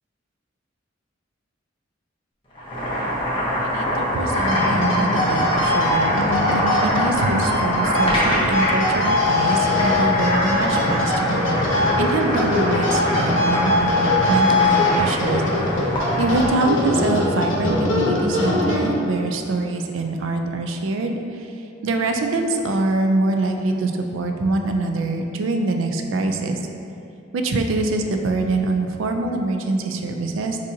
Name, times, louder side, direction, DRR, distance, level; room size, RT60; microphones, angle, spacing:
Boiling, 2.5-16.6, equal, 25° left, 0.9 m, -24 dB
voice 1, 3.6-11.4 11.7-15.4 16.2-21.2 21.8-26.6 27.3-30.6, right 2 dB, 85° right, 4 dB, 0.4 m, -24 dB
sound 1, 4.2-19.2, left 2 dB, 80° left, 0.8 m, -22 dB
6.1 x 2.7 x 2.7 m, 2.5 s
head